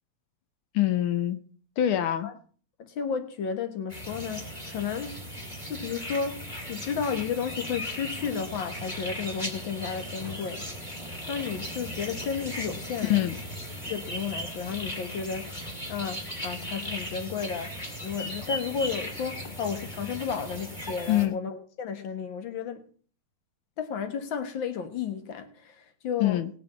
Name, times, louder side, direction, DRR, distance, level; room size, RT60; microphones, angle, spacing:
voice 1, 0.7-1.4 1.8-2.3 13.0-13.3 21.1-21.4 26.2-26.5, left 13 dB, 85° left, 1.1 m, -24 dB
voice 2, 2.8-5.2 5.7-10.7 11.3-13.3 13.9-15.5 15.9-17.8 18.0-22.9 23.8-26.4, left 6 dB, 50° left, 1.7 m, -33 dB
sound 1, 3.9-21.3, equal, 15° left, 2.5 m, -37 dB
20.0 x 6.9 x 4.2 m
omnidirectional pair, 3.4 m